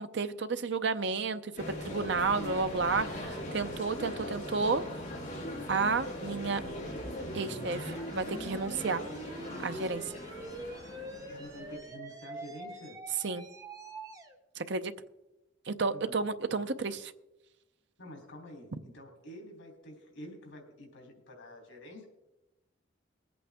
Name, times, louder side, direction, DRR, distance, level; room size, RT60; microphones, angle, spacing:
voice 1, 0.0-4.8 5.7-6.6 7.3-9.0 9.6-10.0 13.2-13.5 14.6-14.9 15.7-17.1, right 4 dB, 60° right, 10 dB, 0.6 m, -31 dB
sound 1, 1.6-11.8, left 1 dB, 40° left, 2.8 m, -40 dB
sound 2, 6.6-14.3, right 1 dB, 15° right, 1.0 m, -45 dB
voice 2, 11.1-13.0 15.9-16.1 18.0-22.1, equal, 80° left, 2 dB, 3.5 m, -48 dB
20.5 x 8.5 x 3.6 m, 0.98 s
head